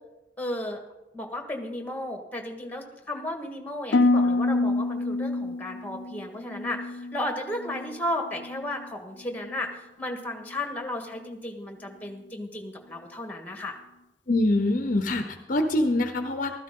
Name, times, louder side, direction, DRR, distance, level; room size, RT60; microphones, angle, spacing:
voice 1, 0.4-0.8 1.1-13.8, left 1 dB, 10° left, 3 dB, 1.7 m, -34 dB
Harp, 3.9-8.0 8.3-8.9 9.4-9.7, left 2 dB, 90° left, 0.6 m, -27 dB
voice 2, 14.3-16.5, left 1 dB, 50° left, 7 dB, 0.8 m, -24 dB
15.0 x 13.5 x 3.8 m, 1.0 s
head